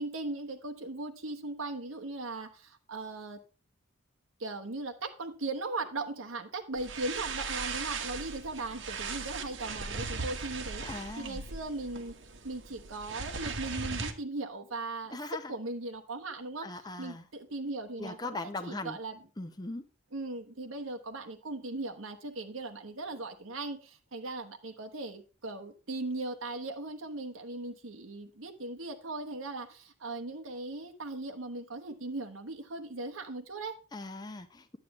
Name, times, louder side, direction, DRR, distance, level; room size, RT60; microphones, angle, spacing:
voice 1, 0.0-3.4 4.4-12.2 12.4-15.2 15.5-19.2 20.1-33.7, right 2 dB, 85° right, 4 dB, 1.1 m, -38 dB
sound 1, 6.8-14.1, right 4 dB, 65° right, 1.2 m, -38 dB
voice 2, 10.8-11.4 15.1-15.5 16.6-17.2 18.0-19.0 19.4-19.8 33.9-34.8, left 2 dB, 20° left, 8 dB, 0.7 m, -39 dB
10.0 x 8.4 x 3.0 m, 0.35 s
head